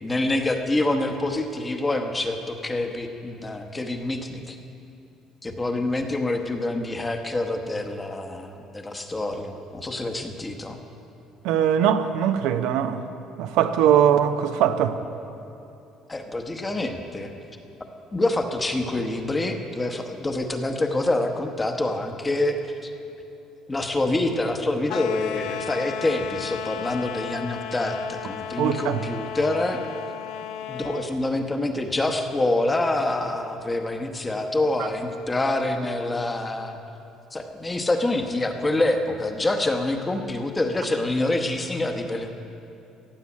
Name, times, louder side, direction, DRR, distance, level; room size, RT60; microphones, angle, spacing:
voice 1, 0.0-4.6 5.4-10.8 16.1-17.3 18.1-22.9 23.7-29.8 30.7-36.8 37.3-42.3, left 2 dB, 15° left, 1.0 m, -26 dB
voice 2, 11.4-13.0 13.4-15.0 28.6-29.0, right 9 dB, 85° right, 0.7 m, -21 dB
sound 1, 24.9-31.1, left 9 dB, 75° left, 0.6 m, -34 dB
16.0 x 7.4 x 8.4 m
cardioid pair, 145°, 0 cm